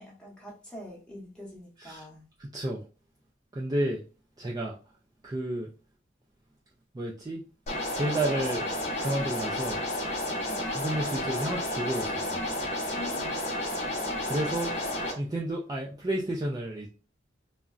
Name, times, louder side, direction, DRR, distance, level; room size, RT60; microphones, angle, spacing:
voice 1, 0.0-2.3 10.5-10.7 12.9-14.0, left 2 dB, 5° left, 0.9 m, -45 dB
voice 2, 2.4-2.8 3.5-4.0 4.4-4.8 5.2-5.7 6.9-7.5 7.9-8.7 9.0-9.8 10.7-12.5 14.3-14.7 15.2-16.9, right 1 dB, 20° right, 0.3 m, -31 dB
sound 1, 7.7-15.1, left 1 dB, 35° left, 0.8 m, -31 dB
3.7 x 2.1 x 2.4 m
head